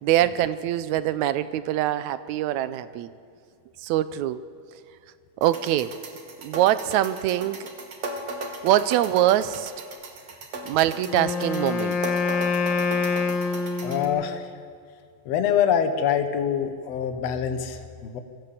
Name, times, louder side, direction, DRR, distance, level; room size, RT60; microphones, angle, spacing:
voice 1, 0.0-3.1 3.8-4.4 5.4-5.9 6.4-7.6 8.6-9.7 10.6-12.0, right 13 dB, 75° right, 14 dB, 1.9 m, -23 dB
sound 1, 5.4-14.0, right 2 dB, 55° right, 2.4 m, -37 dB
Wind instrument woodwind instrument, 11.0-14.3, left 4 dB, 85° left, 1.0 m, -26 dB
voice 2, 13.8-14.5 15.3-18.2, left 8 dB, 60° left, 7 dB, 2.1 m, -25 dB
23.0 x 14.0 x 8.3 m, 2.2 s
omnidirectional pair, 3.6 m